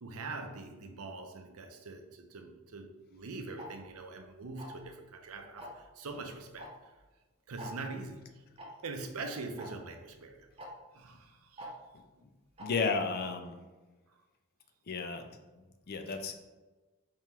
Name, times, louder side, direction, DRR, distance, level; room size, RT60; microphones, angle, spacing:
voice 1, 0.0-6.7 7.5-8.4 8.8-10.5 10.9-11.7 16.0-16.3, right 3 dB, 90° right, 4 dB, 0.6 m, -43 dB
Tick-tock, 3.6-3.7 4.6-4.9 5.6-5.8 6.6-6.7 7.0-7.1 7.6-7.7 8.6-8.7 9.6-9.7 10.6-10.7 11.6-11.7 12.6-12.7, equal, 25° right, 0.7 m, -44 dB
voice 2, 12.6-13.6 14.9-15.2 15.9-16.3, left 4 dB, 45° left, 7 dB, 0.4 m, -32 dB
3.7 x 3.0 x 4.3 m, 1.2 s
head